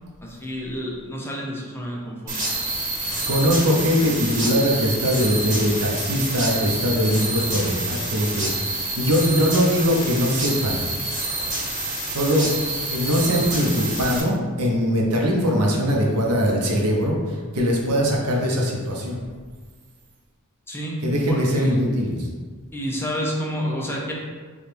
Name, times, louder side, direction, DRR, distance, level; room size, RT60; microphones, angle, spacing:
voice 1, 0.2-2.4 20.7-21.0 21.3-21.8 22.7-24.1, equal, 10° left, -3 dB, 0.6 m, -29 dB
sound 1, 2.3-14.2, right 2 dB, 35° right, 1.2 m, -28 dB
voice 2, 3.1-10.8 12.1-12.5 12.9-19.2 21.0-22.3, equal, 85° right, -1 dB, 0.8 m, -21 dB
4.8 x 2.4 x 3.3 m, 1.5 s
head